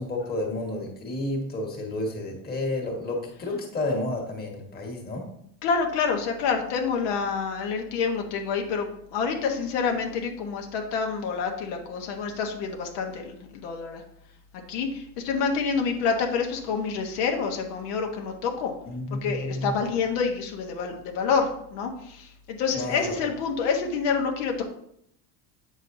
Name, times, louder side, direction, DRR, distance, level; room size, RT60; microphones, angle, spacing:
voice 1, 0.0-5.2 18.9-19.7 22.7-23.1, left 2 dB, 25° left, 0 dB, 1.6 m, -31 dB
voice 2, 5.6-14.0 14.7-18.7 19.1-24.7, left 5 dB, 80° left, 2 dB, 1.2 m, -27 dB
8.3 x 6.2 x 2.7 m, 0.71 s
cardioid pair, 155°, 39 cm